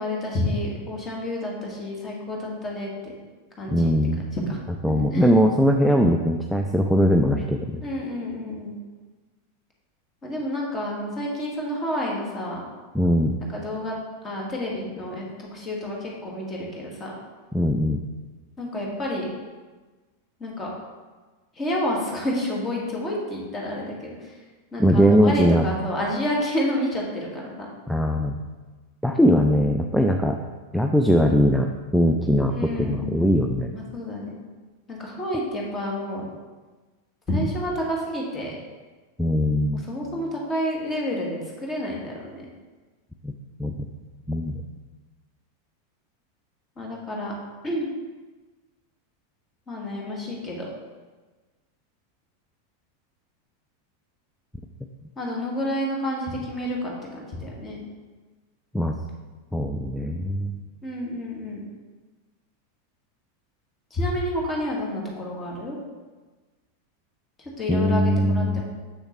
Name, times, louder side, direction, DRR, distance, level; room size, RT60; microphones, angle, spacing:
voice 1, 0.0-3.1 3.6-3.9 4.3-4.6 5.1-5.3 7.8-8.8 10.2-12.6 13.4-14.0 14.2-17.1 18.6-19.3 20.4-20.7 21.5-24.4 24.7-27.5 32.5-33.1 33.7-34.3 34.9-36.2 37.3-38.6 39.7-42.5 46.8-47.3 47.6-47.9 49.7-50.7 55.2-57.8 60.8-61.6 63.9-65.8 67.4-68.6, left 1 dB, 20° left, -2 dB, 1.8 m, -29 dB
voice 2, 3.7-4.2 4.8-7.8 12.9-13.3 17.5-18.0 24.8-25.6 27.9-28.4 29.0-30.4 30.7-33.7 39.2-39.8 43.2-43.3 43.6-43.9 44.3-44.6 58.7-58.9 59.5-60.6 67.7-68.6, equal, ahead, 3 dB, 0.4 m, -20 dB
6.9 x 6.3 x 3.1 m, 1.3 s
figure-of-eight pair, 90°, 0 cm